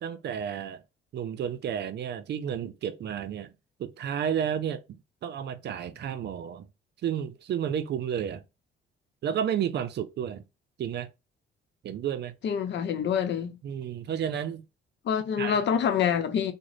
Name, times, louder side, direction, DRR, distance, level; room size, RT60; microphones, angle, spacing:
voice 1, 0.0-0.8 1.1-3.5 3.8-6.7 7.0-8.4 9.2-10.4 10.8-11.1 11.8-12.3 13.6-14.7 15.4-15.6, right 9 dB, 60° right, 0.5 m, -31 dB
voice 2, 12.4-13.6 15.0-16.5, left 8 dB, 65° left, 0.7 m, -26 dB
3.7 x 2.1 x 3.3 m
cardioid pair, 90°, 20 cm